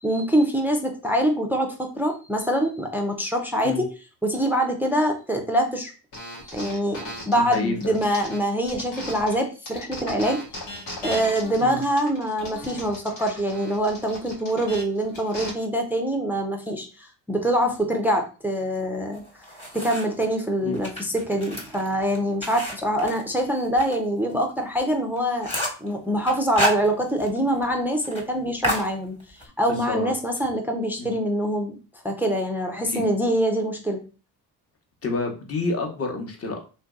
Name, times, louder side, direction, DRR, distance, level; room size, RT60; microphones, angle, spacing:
voice 1, 0.0-3.9 4.2-5.9 6.5-10.4 11.0-19.2 19.7-25.5 25.8-31.8 32.0-34.0, equal, 5° right, 3 dB, 0.4 m, -24 dB
sound 1, 6.1-9.4 9.7-15.5, left 1 dB, 80° left, 1.2 m, -37 dB
voice 2, 7.3-8.0 11.6-11.8 20.6-20.8 29.7-30.1 31.0-31.1 32.9-33.0 35.0-36.6, left 3 dB, 30° left, 2 dB, 0.9 m, -28 dB
sound 2, 19.1-20.3 20.7-24.0 24.3-24.4 24.8-24.9 25.2-25.9 26.3-27.4 27.6-27.7 28.0-28.2 28.6-29.5, equal, 10° left, 1.1 m, -29 dB
3.1 x 2.6 x 2.3 m, 0.34 s
hypercardioid pair, 60°, 50 cm